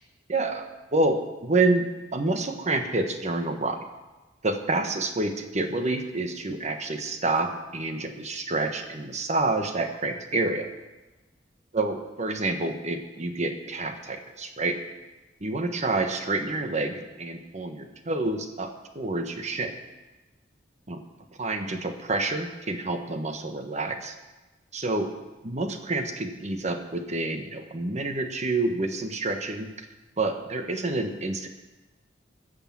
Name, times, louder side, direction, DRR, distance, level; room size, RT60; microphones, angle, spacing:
voice 1, 0.3-3.8 4.4-10.7 11.7-14.8 15.4-19.7 20.9-21.0 21.4-24.2 24.7-25.1 25.4-29.7 30.2-31.5, right 2 dB, 40° right, 6 dB, 1.2 m, -28 dB
15.5 x 6.6 x 7.4 m, 1.1 s
head